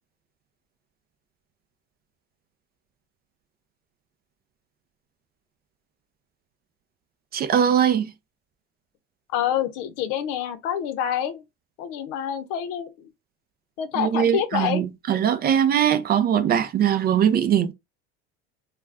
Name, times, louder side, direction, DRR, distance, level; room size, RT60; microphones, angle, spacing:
voice 1, 7.3-8.1 14.0-17.7, right 9 dB, 30° right, 0.4 m, -21 dB
voice 2, 9.3-11.4 11.8-13.1 13.8-14.8, left 9 dB, 75° left, 0.7 m, -27 dB
2.4 x 2.2 x 3.3 m
supercardioid pair, 115°, 30 cm